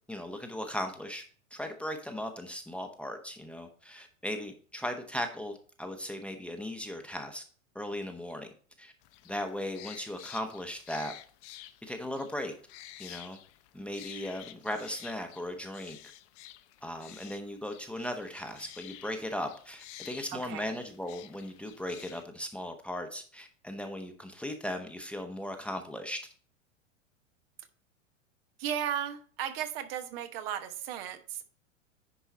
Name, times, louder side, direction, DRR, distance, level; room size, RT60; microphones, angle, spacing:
voice 1, 0.1-1.2 1.5-7.4 7.7-8.5 8.8-8.9 9.2-11.1 11.8-12.5 13.0-13.4 13.7-16.0 16.8-26.2, left 1 dB, 5° left, 4 dB, 1.0 m, -37 dB
sound 1, 9.0-22.2, left 14 dB, 35° left, 0.7 m, -51 dB
voice 2, 20.3-20.7 28.6-31.4, right 9 dB, 45° right, 9 dB, 1.1 m, -35 dB
10.5 x 4.6 x 4.2 m, 0.42 s
figure-of-eight pair, 95°, 39 cm